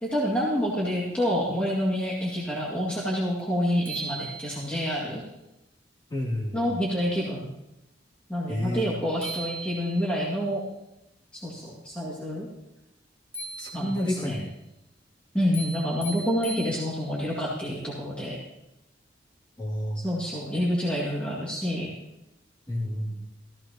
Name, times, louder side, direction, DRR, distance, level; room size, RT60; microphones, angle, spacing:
voice 1, 0.0-5.2 6.5-7.5 8.3-10.6 11.3-12.5 13.7-14.4 15.3-18.4 20.0-21.9, equal, 5° left, -6 dB, 2.1 m, -28 dB
sound 1, 3.4-3.5 3.9-4.9 8.8-8.9 9.2-10.3 13.3-14.2 15.5-17.3, right 3 dB, 15° right, 2.3 m, -39 dB
voice 2, 6.1-6.7 8.5-9.0 13.6-14.5 19.6-20.0 22.7-23.2, left 1 dB, 25° left, -5 dB, 2.5 m, -30 dB
14.5 x 14.5 x 2.9 m, 0.92 s
head